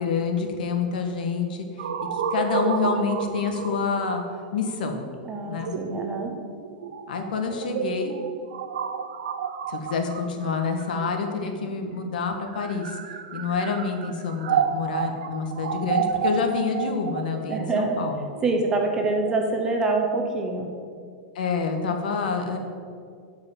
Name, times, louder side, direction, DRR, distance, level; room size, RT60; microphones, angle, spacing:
voice 1, 0.0-1.7 2.1-4.2 4.5-5.1 5.5-5.7 7.1-8.2 9.7-13.0 13.3-18.3 21.3-22.6, left 5 dB, 75° left, 4 dB, 1.5 m, -27 dB
sound 1, 1.8-11.6 12.4-19.3, right 7 dB, 80° right, 0.8 m, -31 dB
voice 2, 5.3-6.3 17.5-18.0 18.4-20.7, right 3 dB, 15° right, 2 dB, 0.8 m, -25 dB
10.5 x 4.9 x 7.5 m, 2.2 s
supercardioid pair, 175°, 5 cm